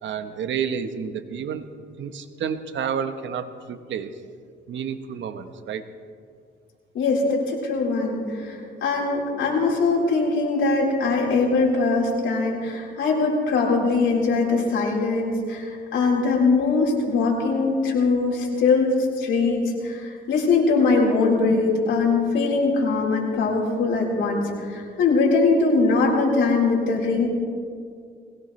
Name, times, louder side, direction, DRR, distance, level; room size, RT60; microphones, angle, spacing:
voice 1, 0.0-1.7 2.0-4.1 4.7-5.9 8.7-8.8 18.5-18.6, right 7 dB, 70° right, 9 dB, 1.1 m, -30 dB
voice 2, 6.9-27.3, left 3 dB, 80° left, -2 dB, 4.1 m, -21 dB
21.0 x 18.0 x 3.2 m, 2.2 s
cardioid pair, 90°, 20 cm